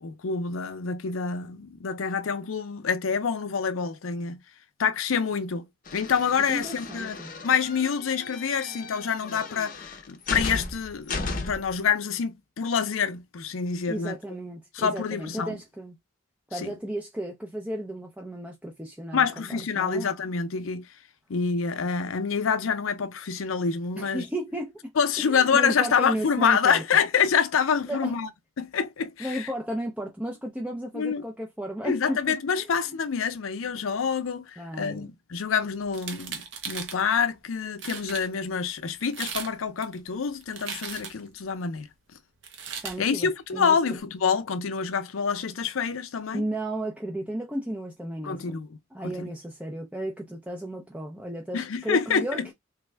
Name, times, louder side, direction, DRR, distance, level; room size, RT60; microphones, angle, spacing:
voice 1, 0.0-4.4 4.8-5.7 5.9-7.2 7.4-11.2 11.5-14.2 14.7-15.6 16.6-16.7 19.1-20.9 21.3-24.2 25.0-28.3 28.6-29.5 30.9-31.2 31.8-41.9 43.0-46.4 48.2-48.7 49.0-49.3 51.5-52.5, left 6 dB, 85° left, 0.5 m, -27 dB
sound 1, 5.9-11.8, left 3 dB, 45° left, 0.6 m, -35 dB
voice 2, 6.5-7.3 13.9-16.0 16.5-20.1 23.9-24.8 25.2-26.8 27.9-28.1 29.2-32.2 32.5-32.7 34.6-35.1 42.8-43.8 46.3-48.5 48.9-52.5, right 1 dB, 5° right, 0.5 m, -34 dB
sound 2, 35.9-37.0 37.5-37.6 37.8-38.3 39.0-39.5 39.8-41.3 42.4-43.0, right 6 dB, 65° right, 0.7 m, -37 dB
3.4 x 2.2 x 3.2 m
head